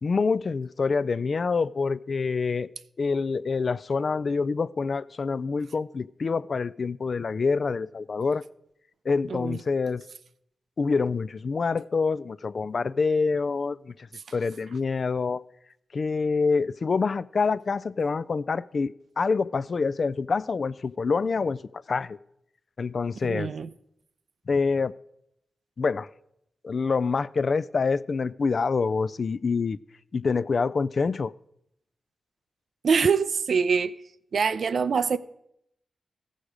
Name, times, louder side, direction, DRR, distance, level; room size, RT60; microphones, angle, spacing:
voice 1, 0.0-2.7 3.0-8.4 9.1-10.0 10.8-13.9 14.3-15.4 15.9-22.2 22.8-23.5 24.5-24.9 25.8-26.1 26.6-29.8 30.1-31.3, left 4 dB, 60° left, 0.3 m, -26 dB
voice 2, 9.3-9.6 23.2-23.7 32.8-33.9 34.3-35.2, right 5 dB, 70° right, 0.4 m, -24 dB
14.5 x 6.4 x 5.0 m
cardioid pair, 45°, 0 cm